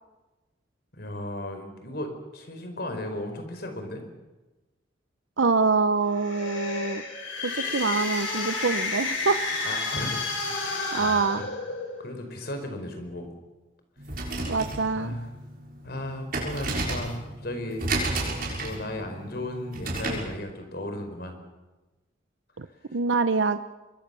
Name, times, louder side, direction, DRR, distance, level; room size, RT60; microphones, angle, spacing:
voice 1, 1.0-4.1 9.6-11.5 12.0-13.3 14.1-14.3 14.9-15.3 15.8-17.9 18.6-21.4, left 1 dB, 50° left, 6 dB, 4.8 m, -35 dB
voice 2, 5.4-7.0 7.5-9.4 10.9-11.4 14.5-15.2 22.6-22.7 22.9-23.6, right 4 dB, 75° right, 11 dB, 0.8 m, -25 dB
sound 1, 6.0-12.1, left 3 dB, 85° left, 6.6 m, -31 dB
sound 2, 14.0-20.3, right 2 dB, 50° right, 6.7 m, -32 dB
25.5 x 22.5 x 7.0 m, 1.1 s
head